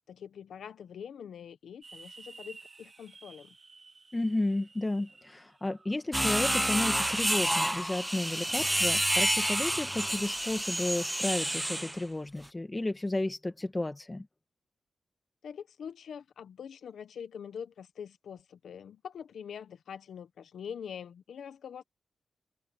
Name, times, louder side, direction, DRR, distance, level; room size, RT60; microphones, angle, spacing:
voice 1, 0.1-3.5 15.4-21.8, left 7 dB, 85° left, 1.1 m, -44 dB
sound 1, 1.8-6.0, right 3 dB, 35° right, 5.1 m, -53 dB
voice 2, 4.1-14.3, left 2 dB, 20° left, 1.9 m, -32 dB
sound 2, 6.1-12.0, right 1 dB, 5° right, 0.9 m, -29 dB
wide cardioid pair, 115°, 0 cm